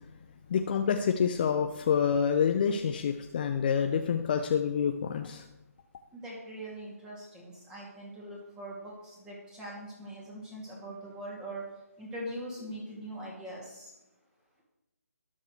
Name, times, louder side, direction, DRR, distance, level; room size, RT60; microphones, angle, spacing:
voice 1, 0.5-5.4, left 7 dB, 35° left, 6 dB, 0.6 m, -27 dB
voice 2, 6.1-11.7 12.0-13.9, right 1 dB, 10° right, -3 dB, 2.7 m, -42 dB
21.5 x 7.3 x 3.3 m, 0.89 s
figure-of-eight pair, 145°, 9 cm